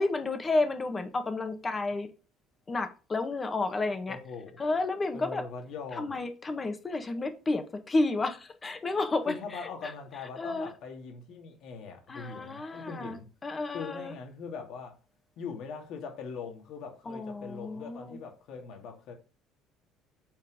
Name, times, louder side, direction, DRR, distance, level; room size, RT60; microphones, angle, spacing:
voice 1, 0.0-2.1 2.7-4.2 4.6-5.4 5.9-9.9 10.4-10.7 12.1-14.1 17.0-18.2, left 2 dB, 25° left, 1.5 m, -31 dB
voice 2, 4.1-4.6 5.1-6.2 9.3-13.3 13.7-15.0 15.4-19.1, left 5 dB, 70° left, 2.4 m, -41 dB
7.3 x 4.5 x 5.1 m
cardioid pair, 110°, 0 cm